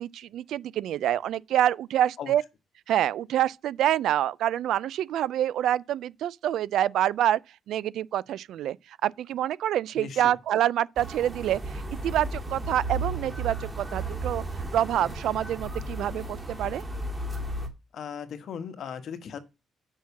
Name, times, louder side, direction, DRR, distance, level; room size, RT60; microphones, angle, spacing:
voice 1, 0.0-2.4 2.9-7.4 7.7-14.4 14.7-16.8, right 11 dB, 75° right, 0.4 m, -27 dB
voice 2, 10.0-10.3 17.9-19.4, left 7 dB, 65° left, 1.2 m, -37 dB
sound 1, 11.0-17.7, right 2 dB, 15° right, 2.2 m, -34 dB
6.5 x 5.6 x 7.0 m
cardioid pair, 90°, 0 cm